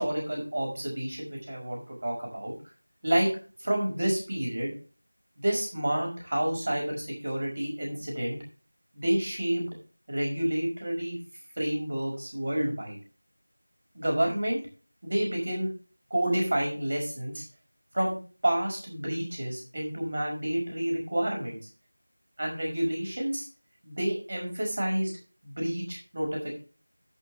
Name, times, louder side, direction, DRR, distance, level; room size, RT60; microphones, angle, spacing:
voice 1, 0.0-2.5 3.0-3.3 3.6-4.7 5.4-8.4 8.9-9.7 10.1-11.2 11.6-13.0 13.9-14.6 15.0-15.7 16.1-17.4 17.9-18.2 18.4-21.6 22.4-23.5 23.8-25.1 25.4-26.6, right 1 dB, 35° right, 0 dB, 5.4 m, -29 dB
10.5 x 10.5 x 3.4 m, 0.36 s
figure-of-eight pair, 175°, 0 cm